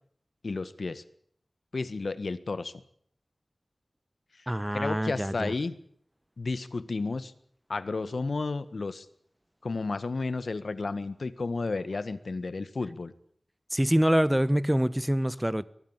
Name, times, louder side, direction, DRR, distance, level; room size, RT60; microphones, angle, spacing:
voice 1, 0.4-1.0 1.7-2.7 4.7-5.7 6.4-7.3 7.7-9.0 9.6-13.1, left 3 dB, 75° left, 1.6 m, -32 dB
voice 2, 4.5-5.5 13.7-15.6, equal, 10° right, 1.1 m, -25 dB
23.5 x 20.0 x 7.3 m
wide cardioid pair, 75°, 0 cm